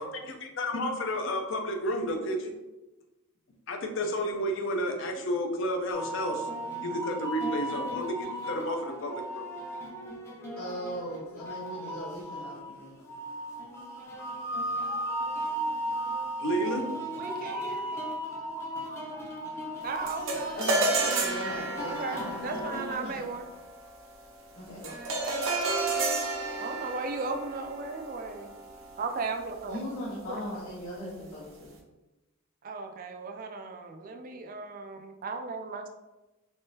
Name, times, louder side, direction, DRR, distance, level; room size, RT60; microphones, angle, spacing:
voice 1, 0.0-2.5 3.7-6.5 6.8-9.5 16.4-16.8, equal, 60° left, 3 dB, 0.5 m, -31 dB
sound 1, 5.9-22.9, right 1 dB, 10° left, 0.5 m, -36 dB
voice 2, 10.6-13.0 19.6-19.7 20.5-23.2 24.5-25.1 29.7-31.7, equal, 85° left, -10 dB, 1.1 m, -39 dB
voice 3, 17.1-18.0 19.8-20.6 21.9-23.5 26.6-28.5 29.0-29.8 30.3-30.6 32.6-35.9, right 4 dB, 40° right, 5 dB, 0.3 m, -36 dB
sound 2, 20.1-29.6, right 3 dB, 65° right, 0.7 m, -32 dB
3.5 x 3.2 x 2.7 m, 1.0 s
head